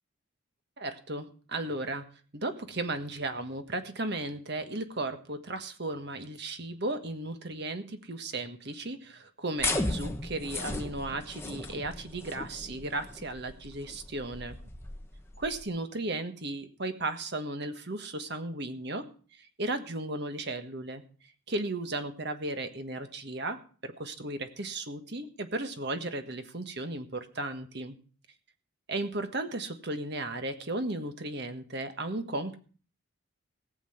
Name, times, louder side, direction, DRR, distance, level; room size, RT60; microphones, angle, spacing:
voice 1, 0.8-2.0 2.3-14.6 15.4-19.0 19.3-21.0 21.5-23.6 23.8-27.9 28.9-32.6, right 2 dB, 55° right, 8 dB, 1.5 m, -35 dB
sound 1, 9.6-15.6, left 2 dB, 10° left, 1.3 m, -36 dB
18.5 x 7.3 x 5.8 m, 0.41 s
head